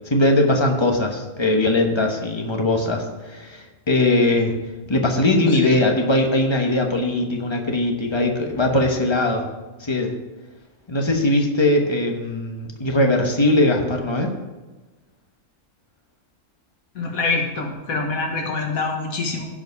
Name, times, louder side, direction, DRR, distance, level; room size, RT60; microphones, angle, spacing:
voice 1, 0.1-4.5 4.9-9.5 9.8-10.1 10.9-14.3, left 2 dB, 20° left, 2 dB, 1.2 m, -20 dB
voice 2, 17.0-19.5, left 3 dB, 85° left, 2 dB, 1.8 m, -25 dB
15.0 x 5.1 x 4.7 m, 1.2 s
omnidirectional pair, 1.4 m